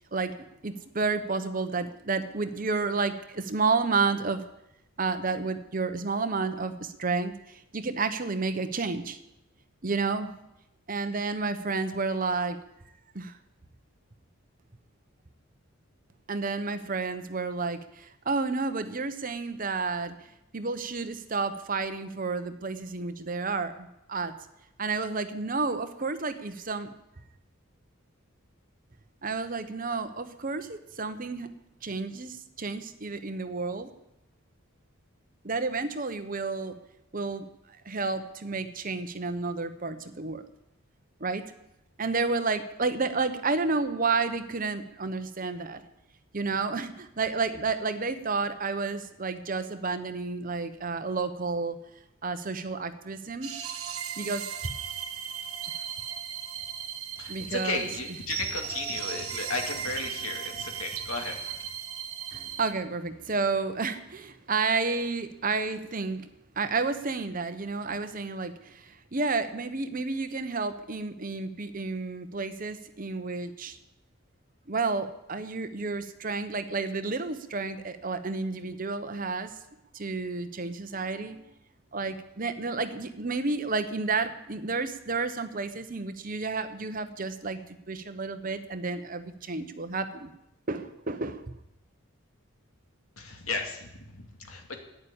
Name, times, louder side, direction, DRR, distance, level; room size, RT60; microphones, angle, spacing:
voice 1, 0.6-4.4 5.0-9.2 9.8-10.3 10.9-12.6 13.1-13.4 16.3-24.3 24.8-26.9 29.2-31.5 31.8-33.9 35.4-36.8 37.1-40.4 41.2-41.4 42.0-45.8 46.3-51.8 52.2-53.5 54.2-54.7 57.3-57.9 62.3-66.3 66.6-73.8 74.7-79.5 79.9-81.4 81.9-87.6 87.9-90.3 90.7-91.5, right 4 dB, 40° right, 9 dB, 0.9 m, -31 dB
sound 1, 53.4-62.7, right 8 dB, 85° right, 1.2 m, -37 dB
voice 2, 57.2-61.6 93.2-94.8, left 3 dB, 80° left, 3 dB, 2.4 m, -35 dB
11.5 x 10.0 x 8.8 m, 0.87 s
head